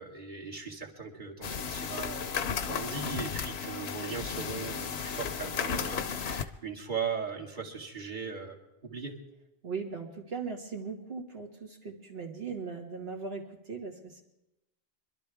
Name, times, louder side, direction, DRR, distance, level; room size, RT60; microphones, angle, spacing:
voice 1, 0.0-8.6 8.8-9.2, right 5 dB, 45° right, -2 dB, 2.2 m, -38 dB
sound 1, 1.4-6.4, left 6 dB, 75° left, 1.0 m, -34 dB
voice 2, 9.6-14.2, right 5 dB, 70° right, 1 dB, 2.2 m, -39 dB
24.5 x 12.5 x 3.5 m, 0.94 s
omnidirectional pair, 1.1 m